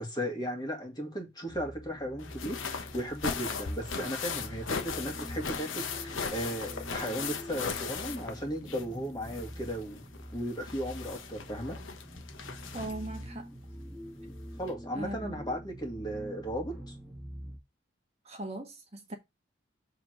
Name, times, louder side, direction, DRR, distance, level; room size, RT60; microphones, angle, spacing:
voice 1, 0.0-10.0 10.3-11.8 14.6-17.0, equal, 20° left, 2.1 m, -36 dB
sound 1, 1.5-17.6, equal, ahead, 1.7 m, -45 dB
sound 2, 2.2-9.0 9.2-13.2 14.3-14.4 14.7-14.8, left 5 dB, 90° left, 1.1 m, -38 dB
voice 2, 12.7-13.5 14.9-15.5 18.2-19.2, right 1 dB, 35° right, 1.5 m, -39 dB
7.2 x 3.8 x 6.2 m
head